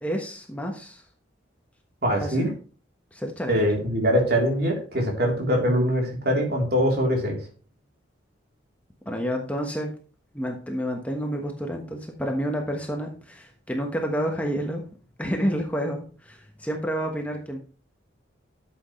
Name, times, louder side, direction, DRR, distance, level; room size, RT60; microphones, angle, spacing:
voice 1, 0.0-1.0 2.2-2.5 3.1-3.6 9.0-9.9 10.3-14.8 15.2-17.6, equal, 10° left, 2 dB, 1.3 m, -29 dB
voice 2, 2.0-2.5 3.5-7.4, equal, 55° right, 0 dB, 3.5 m, -23 dB
12.5 x 8.0 x 3.2 m, 0.37 s
head